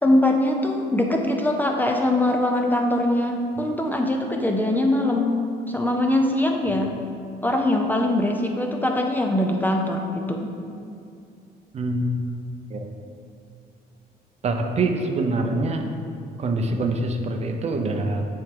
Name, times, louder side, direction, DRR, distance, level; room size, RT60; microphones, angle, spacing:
voice 1, 0.0-6.9 7.4-10.5, left 1 dB, 10° left, 2 dB, 0.5 m, -22 dB
voice 2, 11.7-12.1 12.7-12.9 14.4-15.9 16.4-18.3, right 2 dB, 40° right, 4 dB, 0.6 m, -25 dB
7.6 x 4.5 x 3.7 m, 2.5 s
cardioid pair, 110°, 17 cm